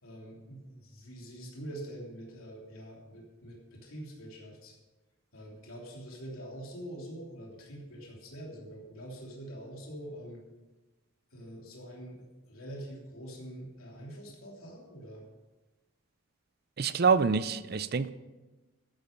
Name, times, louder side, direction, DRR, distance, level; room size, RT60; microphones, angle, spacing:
voice 1, 0.0-4.7 5.3-10.4 11.3-15.2, right 1 dB, 75° left, -2 dB, 3.2 m, -45 dB
voice 2, 16.8-18.1, right 5 dB, 45° right, 15 dB, 0.5 m, -26 dB
13.5 x 10.5 x 5.3 m, 1.1 s
head